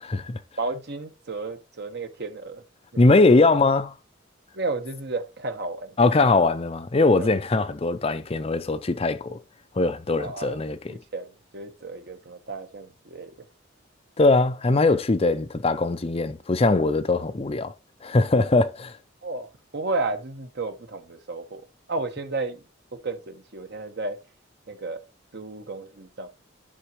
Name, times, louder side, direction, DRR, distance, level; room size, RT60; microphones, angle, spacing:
voice 1, 0.0-0.4 3.0-3.9 6.0-9.4 9.7-11.0 14.2-17.7 18.0-19.0, left 3 dB, 30° left, 0.5 m, -21 dB
voice 2, 0.6-2.6 2.9-3.0 4.5-6.3 7.2-7.3 10.2-10.6 10.9-13.3 19.2-22.6 22.9-24.2 24.7-25.0 25.3-26.3, right 3 dB, 55° right, 1.1 m, -33 dB
10.0 x 6.0 x 3.0 m
head